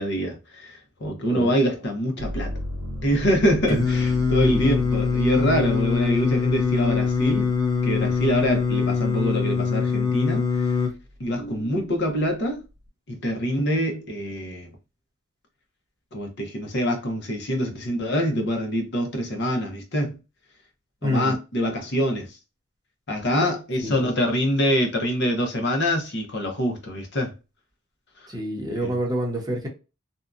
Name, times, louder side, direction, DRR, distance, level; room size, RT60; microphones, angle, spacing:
voice 1, 0.0-2.5 3.0-7.5 7.8-10.4 11.2-12.6 13.1-14.7 16.1-20.2 21.0-22.3 23.1-27.3 28.8-28.9, equal, 55° left, 0.8 m, -25 dB
sound 1, 2.2-10.0 10.5-11.3, left 1 dB, 80° right, 0.5 m, -36 dB
Singing, 3.7-10.9, left 5 dB, 15° left, 0.6 m, -23 dB
voice 2, 4.4-4.7 21.0-21.3 23.8-24.1 28.3-29.7, equal, 20° right, 0.8 m, -27 dB
2.7 x 2.3 x 2.4 m
head